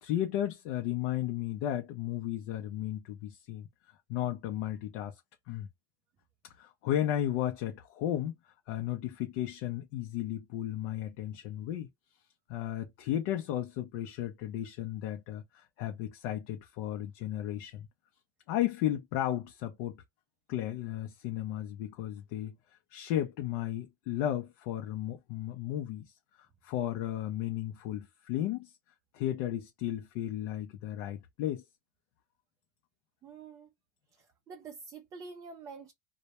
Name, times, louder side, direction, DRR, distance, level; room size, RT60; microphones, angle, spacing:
voice 1, 0.0-3.7 4.1-5.2 5.5-5.7 6.6-8.3 8.7-11.9 12.5-17.9 18.5-20.0 20.5-22.6 22.9-26.1 26.6-28.7 29.1-31.6, left 12 dB, 60° left, 0.5 m, -34 dB
voice 2, 33.2-33.7 34.1-35.9, right 5 dB, 25° right, 0.4 m, -47 dB
2.1 x 2.1 x 2.8 m
supercardioid pair, 140°, 12 cm